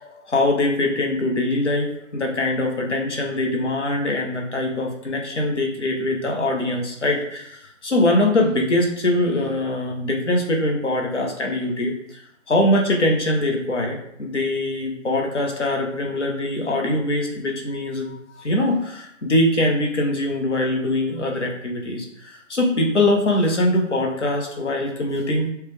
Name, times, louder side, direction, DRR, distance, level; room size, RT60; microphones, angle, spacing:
voice 1, 0.0-12.2 12.5-25.5, left 1 dB, 60° left, 0 dB, 1.2 m, -22 dB
6.2 x 2.3 x 3.5 m, 0.76 s
figure-of-eight pair, 150°, 40 cm